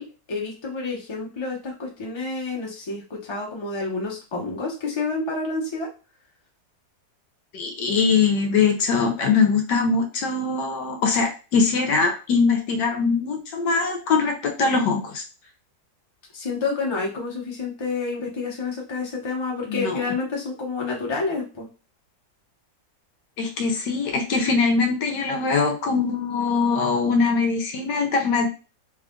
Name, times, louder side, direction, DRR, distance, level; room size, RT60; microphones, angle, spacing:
voice 1, 0.0-5.9 16.3-21.7, left 3 dB, 20° left, -2 dB, 0.8 m, -29 dB
voice 2, 7.5-15.2 19.7-20.0 23.4-28.5, left 4 dB, 70° left, 3 dB, 1.3 m, -22 dB
3.3 x 2.4 x 3.7 m, 0.33 s
omnidirectional pair, 2.0 m